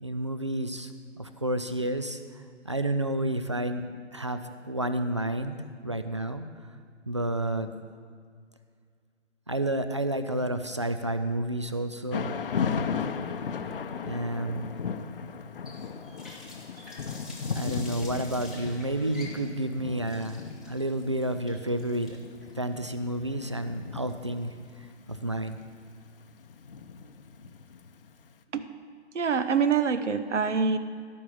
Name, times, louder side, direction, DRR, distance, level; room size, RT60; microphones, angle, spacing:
voice 1, 0.0-0.9 1.2-2.2 2.6-3.8 4.1-6.5 7.1-7.7 9.5-12.4 14.0-14.6 17.5-22.2 22.6-24.5 25.1-25.6, right 1 dB, 25° right, 10 dB, 0.3 m, -30 dB
Thunder / Rain, 12.1-28.1, left 6 dB, 50° left, 0.8 m, -36 dB
Water tap faucet, 15.7-24.6, left 2 dB, ahead, 1.0 m, -48 dB
voice 2, 29.1-30.8, right 6 dB, 75° right, 11 dB, 1.0 m, -25 dB
16.0 x 5.6 x 7.5 m, 2.1 s
figure-of-eight pair, 150°, 36 cm